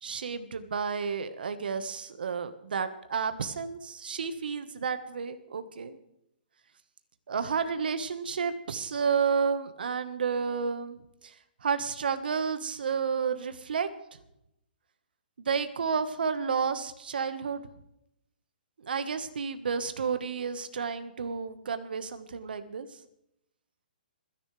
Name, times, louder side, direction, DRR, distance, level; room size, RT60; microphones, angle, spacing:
voice 1, 0.0-6.0 7.3-11.0 11.2-11.3 11.6-13.9 15.4-17.6 18.8-22.9, right 6 dB, 65° right, 10 dB, 1.5 m, -31 dB
27.0 x 10.5 x 3.4 m, 0.81 s
hypercardioid pair, 170°, 5 cm